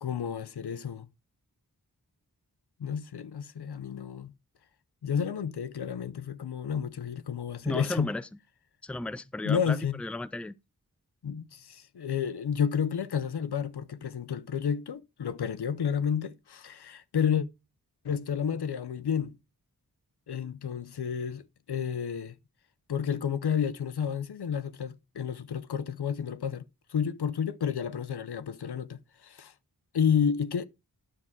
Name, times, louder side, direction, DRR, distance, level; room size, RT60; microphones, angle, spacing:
voice 1, 0.0-1.1 2.8-4.3 5.0-8.1 9.4-10.0 11.2-17.5 18.0-19.4 20.3-22.4 22.9-29.5 29.9-30.7, left 7 dB, 85° left, 0.6 m, -31 dB
voice 2, 7.6-8.3 8.8-10.5, left 2 dB, 5° left, 0.4 m, -34 dB
9.8 x 6.0 x 3.6 m
wide cardioid pair, 40°, 39 cm